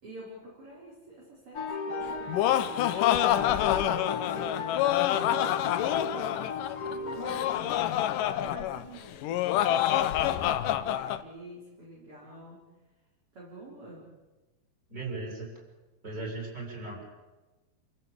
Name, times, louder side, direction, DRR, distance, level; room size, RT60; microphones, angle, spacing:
voice 1, 0.0-3.7 4.1-8.0 8.4-12.7 13.3-14.1, right 2 dB, 35° right, -4 dB, 5.1 m, -48 dB
sound 1, 1.5-7.8, left 4 dB, 45° left, 2.5 m, -36 dB
Laughter, 2.0-11.2, left 12 dB, 70° left, 2.3 m, -27 dB
voice 2, 14.9-15.5 16.0-17.1, right 3 dB, 20° right, -1 dB, 8.1 m, -37 dB
28.5 x 15.5 x 8.6 m, 1.1 s
omnidirectional pair, 4.3 m